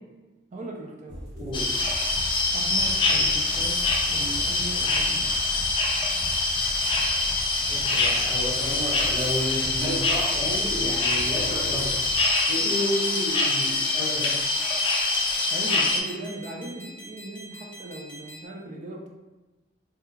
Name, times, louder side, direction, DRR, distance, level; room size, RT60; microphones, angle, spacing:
voice 1, 0.5-1.3 2.5-5.3 15.5-19.1, right 1 dB, 40° right, 0 dB, 0.4 m, -38 dB
sound 1, 1.1-12.2, equal, 70° right, 0.8 m, -39 dB
voice 2, 1.3-1.7 7.7-12.0 12.5-14.4, equal, 25° right, -12 dB, 1.4 m, -31 dB
sound 2, 1.5-16.0, left 3 dB, 30° left, 0.3 m, -25 dB
sound 3, 6.6-18.5, equal, 15° left, 0.7 m, -44 dB
3.0 x 2.2 x 2.3 m, 1.2 s
head